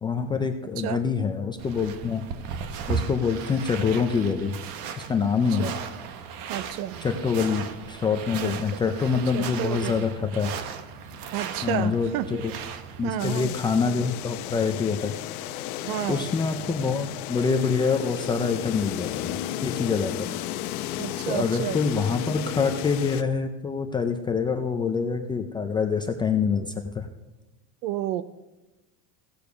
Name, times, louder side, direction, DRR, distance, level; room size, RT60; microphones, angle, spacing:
voice 1, 0.0-2.2 2.9-4.6 5.0-5.7 7.0-10.5 11.6-12.5 13.0-15.1 16.1-20.3 21.3-27.1, left 5 dB, 10° left, 5 dB, 0.3 m, -26 dB
sound 1, 1.6-13.1, right 7 dB, 55° right, 1.2 m, -36 dB
voice 2, 6.5-7.0 8.4-8.5 9.3-10.1 11.3-12.3 13.0-13.5 15.8-16.2 21.0-21.8 27.8-28.2, right 12 dB, 80° right, 15 dB, 0.7 m, -30 dB
sound 2, 13.2-23.2, left 12 dB, 85° left, 0.9 m, -33 dB
16.0 x 6.7 x 6.9 m, 1.1 s
supercardioid pair, 140°, 43 cm